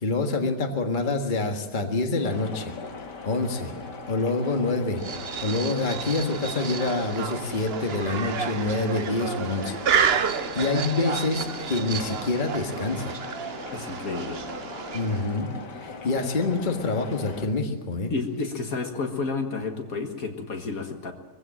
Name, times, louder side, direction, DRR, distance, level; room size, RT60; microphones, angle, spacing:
voice 1, 0.0-2.7 3.3-3.7 4.1-5.0 5.4-13.2 14.9-15.5 15.8-18.1, left 3 dB, 30° left, 4 dB, 1.8 m, -27 dB
sound 1, 2.2-17.5, left 4 dB, 85° left, 2.6 m, -40 dB
sound 2, 5.0-15.4, right 7 dB, 50° right, 0.9 m, -30 dB
voice 2, 13.7-14.4 18.1-21.1, left 4 dB, 55° left, 5 dB, 2.1 m, -31 dB
22.5 x 15.5 x 7.5 m, 1.3 s
omnidirectional pair, 1.8 m